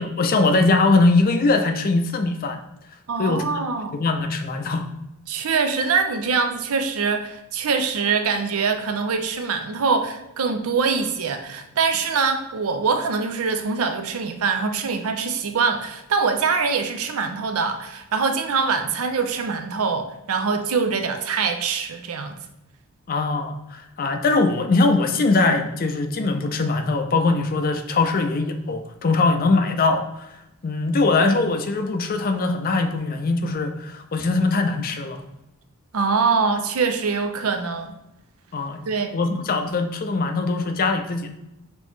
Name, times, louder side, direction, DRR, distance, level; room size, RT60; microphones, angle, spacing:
voice 1, 0.0-2.6 3.2-3.4 3.9-4.9 23.1-30.3 30.6-35.2 38.5-38.8 39.1-41.3, left 3 dB, 40° left, 6 dB, 0.4 m, -21 dB
voice 2, 3.1-4.0 5.3-22.4 35.9-37.9 38.9-39.2, right 5 dB, 70° right, 7 dB, 0.5 m, -23 dB
5.4 x 3.0 x 3.2 m, 0.89 s
head